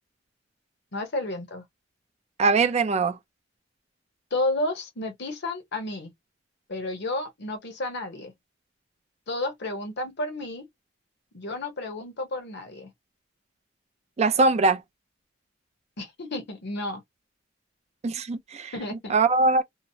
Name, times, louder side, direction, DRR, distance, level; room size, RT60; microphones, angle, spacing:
voice 1, 0.9-1.6 4.3-6.1 6.7-8.3 9.3-10.7 11.3-12.9 16.0-17.0 18.7-19.1, left 2 dB, 60° left, 0.8 m, -31 dB
voice 2, 2.4-3.2 14.2-14.8 18.0-18.7 19.1-19.6, right 3 dB, 35° right, 0.4 m, -21 dB
2.7 x 2.0 x 2.7 m
head